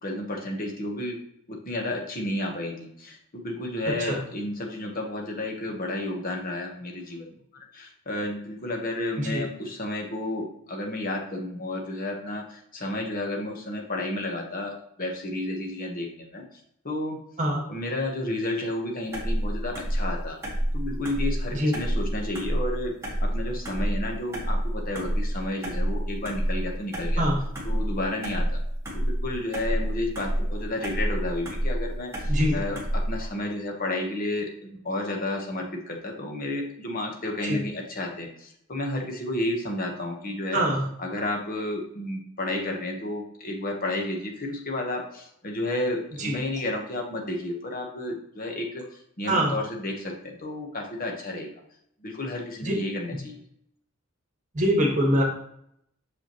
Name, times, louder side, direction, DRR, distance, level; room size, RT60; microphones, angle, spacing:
voice 1, 0.0-1.2 1.5-16.6 16.8-17.2 17.7-20.4 20.7-27.2 27.6-28.6 28.9-40.7 41.0-51.5 52.0-53.4, left 1 dB, 40° left, 1 dB, 1.2 m, -32 dB
sound 1, 19.1-33.3, equal, 15° right, 1.4 m, -28 dB
voice 2, 40.5-40.8 46.2-46.4 49.3-49.5 52.6-52.7 54.5-55.2, equal, 35° right, 1 dB, 1.4 m, -23 dB
6.4 x 5.5 x 3.0 m, 0.73 s
head